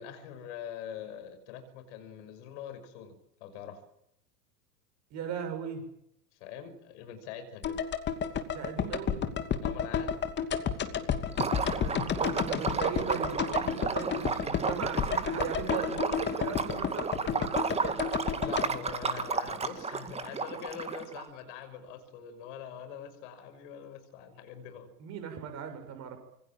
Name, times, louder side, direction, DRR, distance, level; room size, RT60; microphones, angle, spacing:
voice 1, 0.0-3.8 6.3-7.8 9.6-10.2 18.4-24.9, left 8 dB, 45° left, 10 dB, 5.8 m, -44 dB
voice 2, 5.1-5.8 8.5-9.2 11.7-18.1 25.0-26.2, right 7 dB, 35° right, 7 dB, 7.3 m, -38 dB
sound 1, 7.6-19.8 20.1-20.2, left 7 dB, 20° left, 2.7 m, -32 dB
Liquid, 11.3-21.2, right 5 dB, 15° right, 2.2 m, -33 dB
26.5 x 25.0 x 7.6 m, 0.78 s
figure-of-eight pair, 95°, 48 cm